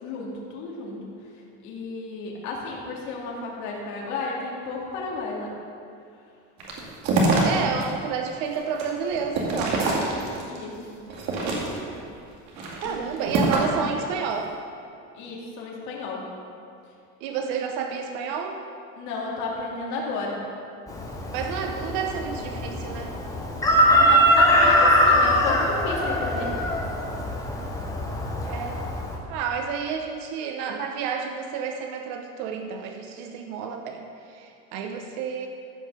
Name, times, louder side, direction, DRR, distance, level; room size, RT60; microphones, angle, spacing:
voice 1, 0.0-1.1 1.6-5.5 10.5-11.0 12.8-13.0 15.1-16.3 19.0-20.5 23.9-26.6, left 3 dB, 60° left, -3 dB, 2.5 m, -32 dB
sound 1, 6.6-7.8 8.3-10.6 11.1-12.0 12.5-13.8, right 2 dB, 55° right, 2.3 m, -25 dB
voice 2, 7.5-10.0 12.7-14.6 17.2-18.6 21.3-23.2 28.5-28.8 29.3-35.5, right 6 dB, 75° right, 4 dB, 1.0 m, -30 dB
Chicken rooster, 20.9-29.2, equal, 10° left, 1.1 m, -22 dB
14.5 x 5.5 x 6.7 m, 2.4 s
cardioid pair, 175°, 32 cm